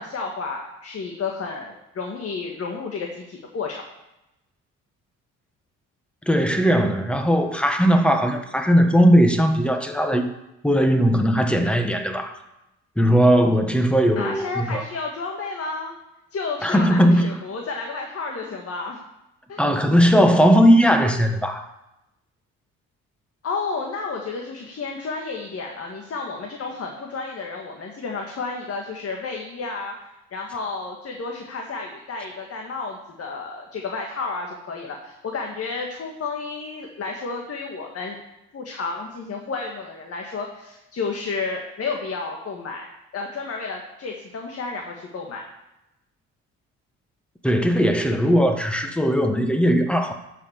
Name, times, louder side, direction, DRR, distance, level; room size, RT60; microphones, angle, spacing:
voice 1, 0.0-3.8 14.2-15.9 16.3-19.0 19.5-19.6 23.4-29.9 30.3-38.2 38.5-42.9 43.1-45.4, left 4 dB, 50° left, 1.9 m, -31 dB
voice 2, 6.2-10.3 10.6-12.4 13.0-14.8 16.6-17.4 19.6-21.7 47.4-50.1, equal, 5° left, 1.5 m, -18 dB
11.5 x 6.0 x 7.4 m
cardioid pair, 90°, 30 cm